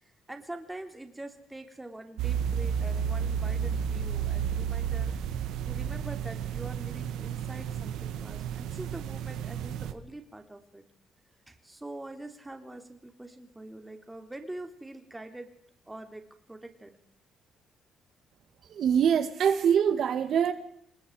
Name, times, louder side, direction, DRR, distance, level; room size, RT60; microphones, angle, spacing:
voice 1, 0.0-5.1 5.6-10.8 11.5-15.5 15.9-16.2 16.5-16.9, right 2 dB, 10° right, 5 dB, 3.4 m, -44 dB
sound 1, 2.2-9.9, right 8 dB, 90° right, 1.8 m, -32 dB
voice 2, 18.7-20.5, right 8 dB, 60° right, 10 dB, 1.8 m, -24 dB
28.0 x 20.0 x 4.9 m, 0.71 s
cardioid pair, 110°, 0 cm